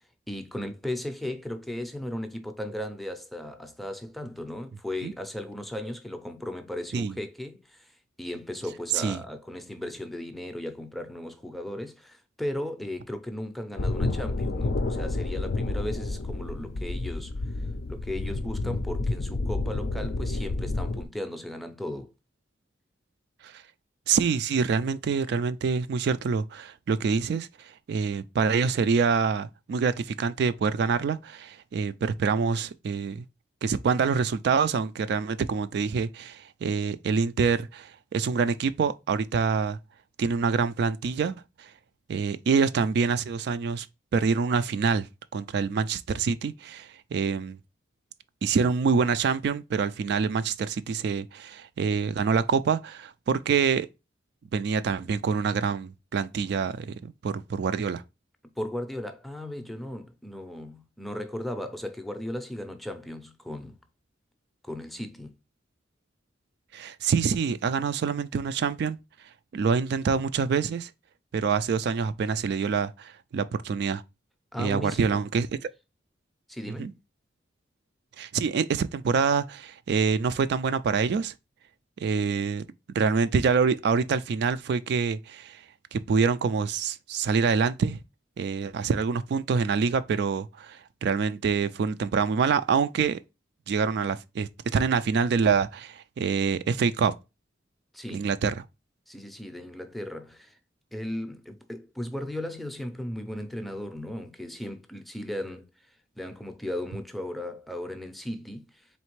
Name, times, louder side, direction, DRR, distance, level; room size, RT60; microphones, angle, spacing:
voice 1, 0.3-17.4 17.9-22.1 58.6-63.8 64.6-65.3 74.5-75.2 76.5-77.0 97.9-98.3 99.1-100.6 100.9-105.7 106.2-108.9, left 1 dB, ahead, 0.5 m, -36 dB
sound 1, 13.8-21.0, left 2 dB, 55° left, 0.4 m, -30 dB
voice 2, 24.1-33.2 33.6-39.8 40.2-41.7 42.1-43.9 44.1-45.1 45.3-47.6 48.4-53.9 54.5-58.0 66.7-69.0 69.5-70.9 71.3-74.0 74.6-75.5 76.7-76.9 78.2-81.3 82.0-82.6 82.9-85.6 85.9-88.0 88.4-93.2 93.7-97.1 98.1-98.5, right 5 dB, 60° right, 0.3 m, -26 dB
4.2 x 3.2 x 3.0 m
head